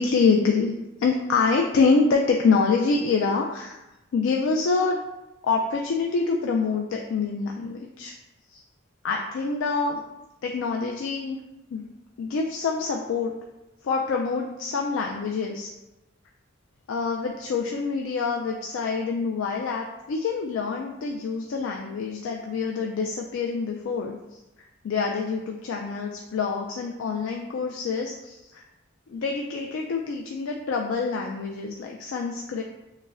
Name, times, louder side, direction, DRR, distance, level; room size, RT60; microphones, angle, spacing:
voice 1, 0.0-3.8 4.1-5.0 5.4-8.1 8.5-8.6 9.0-10.0 10.4-11.4 11.7-11.9 12.2-13.3 13.8-15.7 16.9-24.4 24.8-28.6 29.1-32.6, left 4 dB, 85° left, 1 dB, 0.3 m, -26 dB
6.2 x 2.1 x 2.4 m, 0.98 s
head